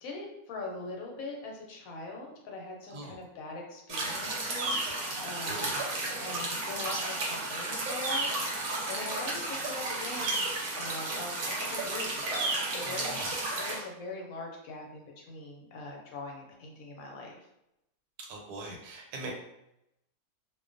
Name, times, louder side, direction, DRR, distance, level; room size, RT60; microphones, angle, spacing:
voice 1, 0.0-5.7 6.2-10.5 10.7-13.2 13.6-17.4, left 2 dB, 70° left, 0 dB, 1.0 m, -42 dB
sound 1, 3.9-13.8, right 2 dB, 65° right, 0.9 m, -33 dB
voice 2, 5.4-5.8 12.8-13.3 18.2-19.3, right 2 dB, 85° right, 0 dB, 1.1 m, -42 dB
2.4 x 2.2 x 2.4 m, 0.84 s
omnidirectional pair, 1.6 m